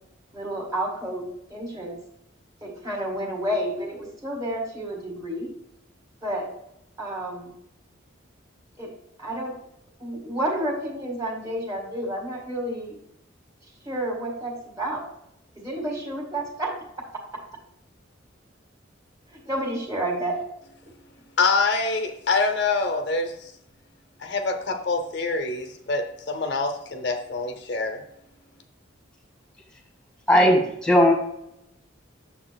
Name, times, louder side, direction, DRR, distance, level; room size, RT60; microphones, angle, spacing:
voice 1, 0.3-1.2 1.5-2.0 2.6-5.5 6.2-6.5 7.0-7.5 8.8-8.9 9.2-9.5 10.0-13.0 13.8-15.0 15.6-16.7 19.3-20.4, right 1 dB, 15° right, -1 dB, 1.8 m, -30 dB
voice 2, 21.4-23.5 24.2-28.0, left 3 dB, 55° left, 4 dB, 0.6 m, -25 dB
voice 3, 30.3-31.1, equal, 5° left, 2 dB, 1.4 m, -17 dB
8.7 x 6.9 x 2.3 m, 0.78 s
head